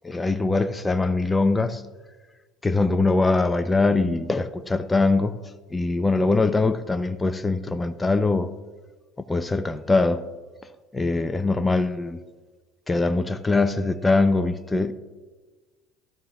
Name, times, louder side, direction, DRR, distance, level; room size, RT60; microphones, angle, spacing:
voice 1, 0.0-1.8 2.6-5.4 5.7-8.5 9.2-10.2 10.9-12.2 12.9-14.9, left 3 dB, 15° left, 0.6 m, -22 dB
16.0 x 13.0 x 2.4 m
hypercardioid pair, 70°, 0 cm